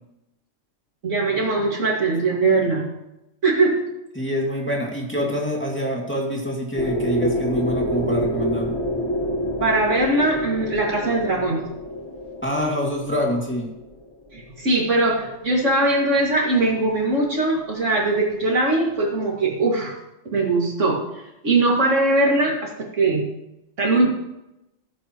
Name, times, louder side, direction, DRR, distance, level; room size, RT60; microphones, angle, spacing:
voice 1, 1.0-2.8 3.4-3.9 9.6-11.6 14.3-19.9 20.3-21.0 21.4-23.2 23.8-24.1, right 2 dB, 80° right, -1 dB, 2.6 m, -21 dB
voice 2, 4.1-8.8 12.4-13.7, equal, 10° left, -2 dB, 2.3 m, -25 dB
sound 1, 6.8-14.6, equal, 25° left, 1.3 m, -27 dB
18.0 x 9.1 x 3.1 m, 0.90 s
omnidirectional pair, 1.3 m